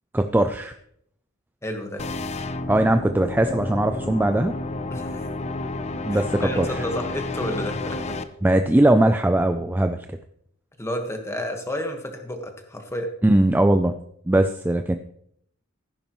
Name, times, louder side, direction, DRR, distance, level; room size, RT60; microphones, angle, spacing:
voice 1, 0.1-0.7 2.7-4.5 6.0-6.7 8.4-10.0 13.2-13.9 14.3-15.0, right 1 dB, 10° right, 7 dB, 0.4 m, -20 dB
voice 2, 1.6-2.0 4.9-5.3 6.1-8.2 10.8-13.1, left 1 dB, 15° left, 4 dB, 1.5 m, -31 dB
sound 1, 2.0-8.2, left 2 dB, 30° left, 0.6 m, -31 dB
14.5 x 10.5 x 3.1 m, 0.70 s
head